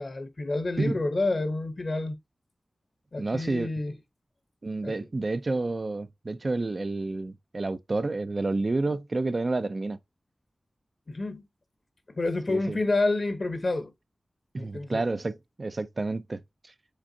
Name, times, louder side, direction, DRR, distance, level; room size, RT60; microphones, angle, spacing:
voice 1, 0.0-2.2 3.1-3.9 4.8-4.9 11.1-11.4 12.1-13.9 14.6-15.0, left 2 dB, 50° left, 0.8 m, -28 dB
voice 2, 3.2-3.7 4.6-10.0 12.5-12.8 14.5-16.7, right 3 dB, 50° right, 0.3 m, -30 dB
5.1 x 3.5 x 2.6 m
wide cardioid pair, 95°, 0 cm